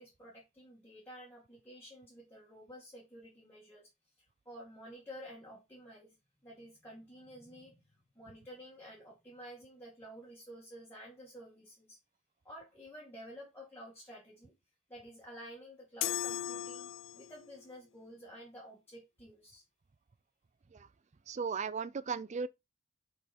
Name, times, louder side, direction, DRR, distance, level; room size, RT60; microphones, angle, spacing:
voice 1, 0.0-3.9 4.5-6.2 6.4-12.0 12.4-14.5 14.9-19.6, equal, 10° left, 2.1 m, -51 dB
sound 1, 16.0-17.5, left 12 dB, 60° left, 0.3 m, -37 dB
voice 2, 21.3-22.5, right 5 dB, 35° right, 0.4 m, -36 dB
6.3 x 5.4 x 4.3 m
head